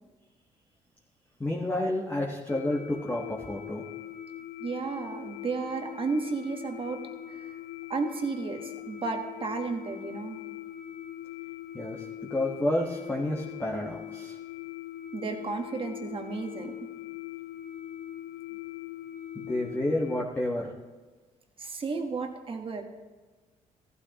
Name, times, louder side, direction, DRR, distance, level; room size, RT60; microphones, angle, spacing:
voice 1, 1.4-3.8 11.7-12.0 12.3-14.4 19.3-20.7, left 1 dB, 15° left, -2 dB, 1.4 m, -30 dB
sound 1, 2.5-20.2, left 11 dB, 80° left, 0.6 m, -41 dB
voice 2, 4.6-7.0 7.3-7.6 7.9-10.4 15.1-16.7 21.6-22.8, right 4 dB, 40° right, 4 dB, 1.4 m, -33 dB
14.5 x 12.0 x 3.0 m, 1.3 s
cardioid pair, 85°, 14 cm